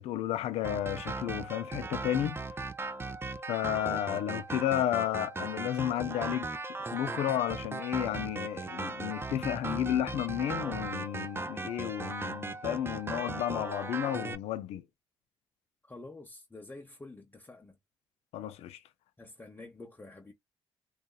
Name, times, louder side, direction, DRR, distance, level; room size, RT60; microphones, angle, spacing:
voice 1, 0.0-2.4 3.5-6.5 6.9-14.8 18.3-18.8, left 12 dB, 75° left, 0.4 m, -32 dB
sound 1, 0.6-14.4, right 3 dB, 20° right, 0.4 m, -38 dB
voice 2, 15.8-17.8 19.2-20.3, left 2 dB, 20° left, 0.7 m, -48 dB
2.8 x 2.3 x 2.3 m
supercardioid pair, 60°, 11 cm